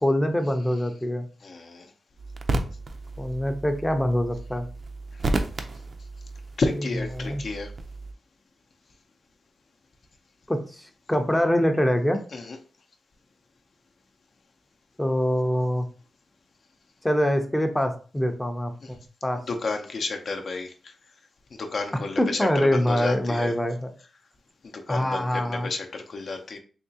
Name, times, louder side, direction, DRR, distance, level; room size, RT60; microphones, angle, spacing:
voice 1, 0.0-1.3 3.2-4.7 7.1-7.4 10.5-10.8 11.1-12.2 15.0-15.9 17.0-19.4 22.2-23.9 24.9-25.7, equal, 10° left, 0.5 m, -24 dB
voice 2, 1.4-1.9 6.6-7.7 12.3-12.6 18.8-18.9 19.5-20.9 21.5-23.5 24.6-26.6, left 3 dB, 60° left, 0.5 m, -31 dB
sound 1, 2.2-8.1, right 2 dB, 45° right, 0.4 m, -33 dB
3.5 x 2.9 x 2.7 m
wide cardioid pair, 105°, 0 cm